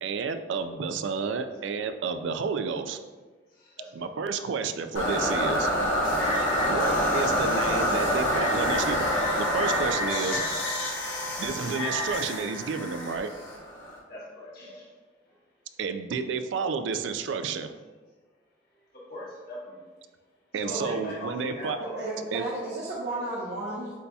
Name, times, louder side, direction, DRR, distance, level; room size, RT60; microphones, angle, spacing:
voice 1, 0.0-3.0 3.9-5.7 6.6-9.0 9.4-10.4 11.4-13.3 15.8-17.7 20.5-21.8 22.3-22.4, right 5 dB, 80° right, 9 dB, 0.3 m, -31 dB
voice 2, 3.5-4.1 14.1-14.9 15.2-15.4 18.9-19.8 20.6-22.0 22.3-22.5, left 1 dB, 55° left, -7 dB, 1.4 m, -41 dB
sound 1, 4.9-14.0, equal, 85° left, 1.0 m, -27 dB
voice 3, 21.9-23.9, right 2 dB, 65° right, -7 dB, 0.8 m, -33 dB
8.0 x 2.7 x 2.3 m, 1.3 s
head